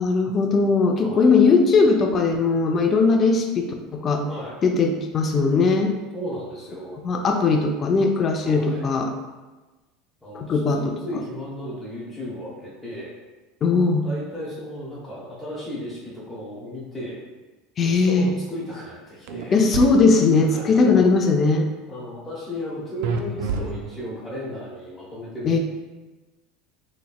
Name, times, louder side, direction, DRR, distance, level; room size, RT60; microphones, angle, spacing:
voice 1, 0.0-4.2 4.6-5.9 7.0-9.1 10.3-10.9 13.6-14.1 17.8-18.3 19.5-21.7 25.4-25.6, left 4 dB, 35° left, 4 dB, 0.5 m, -19 dB
voice 2, 1.0-1.4 4.3-4.5 6.1-7.0 8.4-8.9 10.2-13.1 14.0-17.2 17.9-19.6 20.4-21.0 21.9-25.6, equal, ahead, -10 dB, 1.0 m, -34 dB
sound 1, 19.3-19.9 23.0-24.2, right 5 dB, 70° right, 0.3 m, -28 dB
4.1 x 3.1 x 2.3 m, 1.2 s
supercardioid pair, 120°, 0 cm